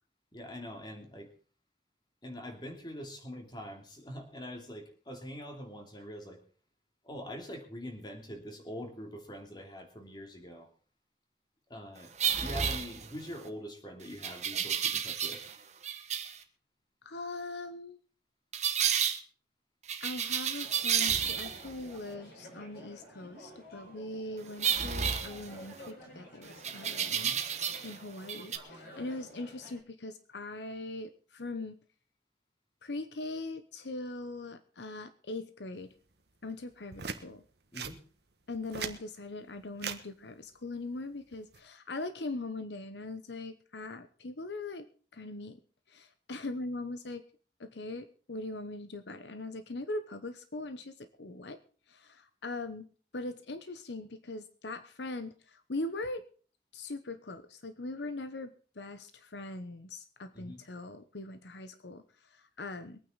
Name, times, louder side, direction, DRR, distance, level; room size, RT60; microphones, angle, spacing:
voice 1, 0.3-1.3 2.2-6.4 7.0-10.7 11.7-15.4 27.1-27.4 37.7-38.0 60.3-60.6, equal, 25° left, 3 dB, 3.0 m, -44 dB
sound 1, 12.2-13.4 14.2-15.5 15.8-16.4 18.5-19.2 19.9-21.7 24.6-25.9 26.6-28.0 28.2-28.6, right 8 dB, 40° right, 1.4 m, -31 dB
voice 2, 17.0-18.0 20.0-27.3 27.8-31.8 32.8-35.9 36.4-37.4 38.5-44.9 45.1-45.6 45.9-47.2 47.6-51.6 51.9-52.9 53.1-56.2 56.7-63.0, left 2 dB, 75° left, 10 dB, 1.0 m, -41 dB
sound 2, 20.6-29.8, equal, 55° left, 5.7 m, -51 dB
sound 3, 36.9-37.2 37.7-38.0 38.5-39.0 39.8-40.0 41.3-41.6, right 6 dB, 65° right, 1.4 m, -38 dB
23.0 x 9.3 x 4.0 m, 0.40 s
head